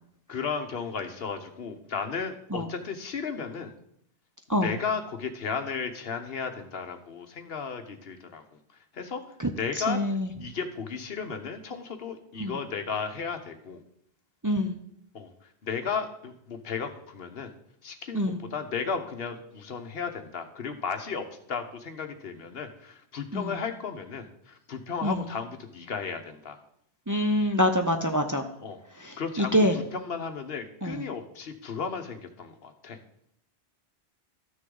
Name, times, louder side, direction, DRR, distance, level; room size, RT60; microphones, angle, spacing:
voice 1, 0.3-3.7 4.6-8.6 8.9-9.2 9.6-10.0 10.4-13.8 15.1-17.5 17.8-26.6 28.6-28.8 29.2-33.0, left 5 dB, 55° left, 7 dB, 1.1 m, -34 dB
voice 2, 9.9-10.3 12.4-12.6 14.4-14.8 18.1-18.4 23.3-23.5 25.0-25.2 27.1-28.4 29.0-29.8 30.8-31.1, equal, 25° right, 5 dB, 0.4 m, -25 dB
13.0 x 6.4 x 3.8 m, 0.72 s
omnidirectional pair, 1.2 m